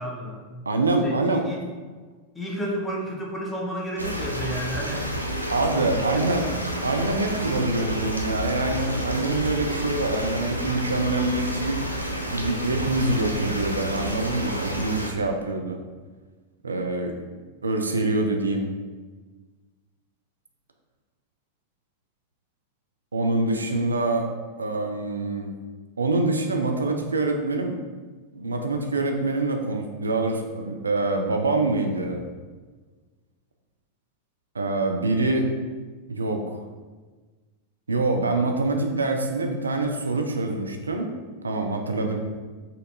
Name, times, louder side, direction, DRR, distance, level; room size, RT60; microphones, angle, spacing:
voice 1, 0.0-0.7 1.0-1.6 2.3-5.1 6.1-6.3, right 1 dB, 10° left, -2 dB, 0.7 m, -32 dB
voice 2, 0.7-1.5 5.5-6.5 6.8-11.9 12.3-15.8 16.6-17.1 17.6-18.7 23.1-24.3 24.6-25.5 26.0-27.8 28.3-32.2 34.5-35.5 36.1-36.6 37.9-41.1 41.4-42.2, right 2 dB, 75° right, 4 dB, 0.3 m, -25 dB
sound 1, 4.0-15.1, equal, 90° left, 0.3 m, -30 dB
4.1 x 2.6 x 2.6 m, 1.3 s
figure-of-eight pair, 90°, 0 cm